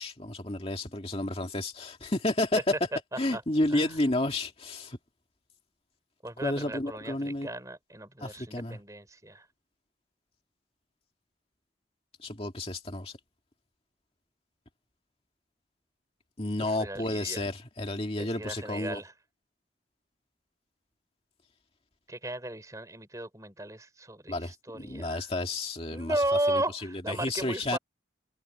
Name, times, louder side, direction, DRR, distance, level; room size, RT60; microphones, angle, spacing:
voice 1, 0.0-2.6 3.2-5.0 6.4-7.5 8.2-8.8 12.2-13.1 16.4-19.0 24.3-26.2 26.5-26.6 27.1-27.8, left 1 dB, 30° left, 2.4 m, -31 dB
voice 2, 3.1-3.4 3.7-4.0 6.2-9.5 16.6-17.4 18.2-19.1 22.1-25.3 25.9-27.8, right 1 dB, 20° right, 4.3 m, -35 dB
head